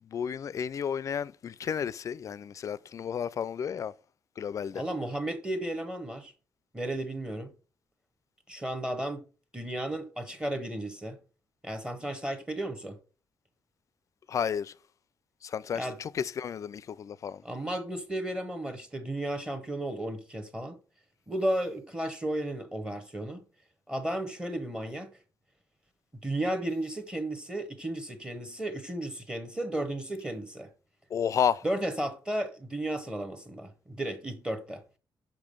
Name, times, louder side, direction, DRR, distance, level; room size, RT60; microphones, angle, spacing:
voice 1, 0.0-3.9 4.4-4.8 14.3-14.7 15.4-17.4 31.1-31.6, left 8 dB, 45° left, 0.3 m, -32 dB
voice 2, 4.7-6.3 6.7-7.5 8.5-9.2 9.5-11.2 11.6-13.0 15.7-16.0 17.4-20.8 21.3-23.4 23.9-25.1 26.2-30.7 31.6-34.8, right 1 dB, 10° right, 0.9 m, -34 dB
5.8 x 5.1 x 5.2 m
cardioid pair, 145°, 8 cm